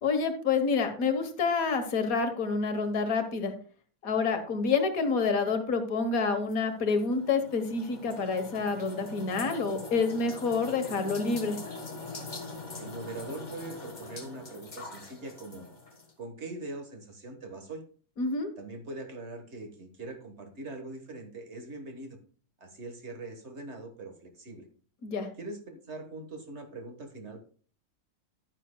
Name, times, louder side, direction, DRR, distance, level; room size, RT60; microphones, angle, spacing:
voice 1, 0.0-3.5 4.0-11.6 18.2-18.5 25.0-25.3, left 4 dB, 70° left, 8 dB, 1.5 m, -28 dB
sound 1, 6.5-16.1, left 3 dB, 30° left, 1.4 m, -43 dB
voice 2, 12.8-15.7 16.2-17.8 18.6-22.2 22.6-24.7 25.4-27.4, right 2 dB, 50° right, 5 dB, 1.6 m, -42 dB
11.0 x 9.8 x 2.2 m, 0.43 s
omnidirectional pair, 1.6 m